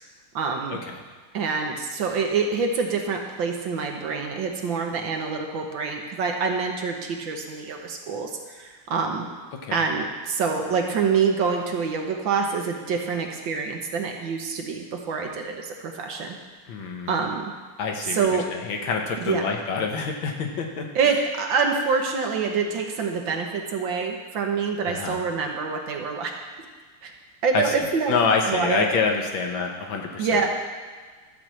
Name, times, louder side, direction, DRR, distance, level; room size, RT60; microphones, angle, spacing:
voice 1, 0.3-0.8 1.3-9.2 9.7-16.3 17.1-17.5 18.1-18.5 19.2-19.5 20.9-26.3 27.0-27.1 27.4-28.1 28.5-28.9 30.2-30.6, right 5 dB, 65° right, 2 dB, 1.8 m, -26 dB
voice 2, 16.7-17.2 17.8-20.9 24.9-25.2 27.5-30.4, left 5 dB, 70° left, 2 dB, 1.8 m, -27 dB
12.5 x 4.9 x 7.5 m, 1.5 s
omnidirectional pair, 2.3 m